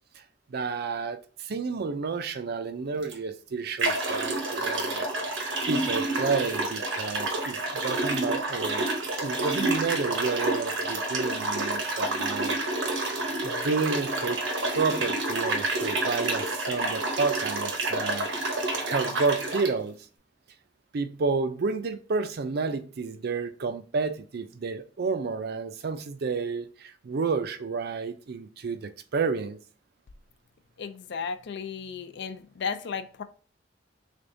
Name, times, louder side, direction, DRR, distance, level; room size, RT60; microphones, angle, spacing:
voice 1, 0.5-5.0 5.7-8.9 9.2-12.6 13.1-14.4 14.7-18.3 18.9-20.0 20.9-29.6, right 4 dB, 55° right, 0.4 m, -30 dB
sound 1, 3.0-3.1 3.8-19.7, right 2 dB, 85° right, 0.9 m, -29 dB
voice 2, 30.8-33.2, left 6 dB, 65° left, 0.4 m, -34 dB
3.6 x 3.4 x 2.6 m
head